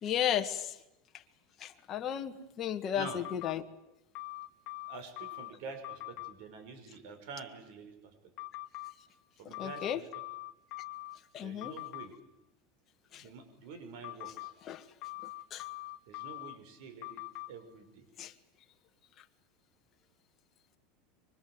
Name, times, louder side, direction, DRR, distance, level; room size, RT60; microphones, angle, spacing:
voice 1, 0.0-0.8 1.6-3.6 9.5-10.0 11.3-11.7 13.1-13.2 14.7-14.8 15.5-15.7 18.2-18.3, left 10 dB, 30° left, 5 dB, 1.8 m, -34 dB
sound 1, 3.0-3.5 4.1-5.5 5.8-6.3 8.4-8.9 9.5-11.2 11.6-12.1 14.0-14.5 15.0-16.5 17.0-17.5, left 20 dB, 45° left, 2.2 m, -42 dB
voice 2, 4.9-8.1 9.4-10.1 11.4-12.1 13.1-14.5 16.1-17.2 17.5-18.1, right 5 dB, 60° right, 8 dB, 5.8 m, -47 dB
24.5 x 24.5 x 8.0 m, 0.89 s
supercardioid pair, 155°, 0 cm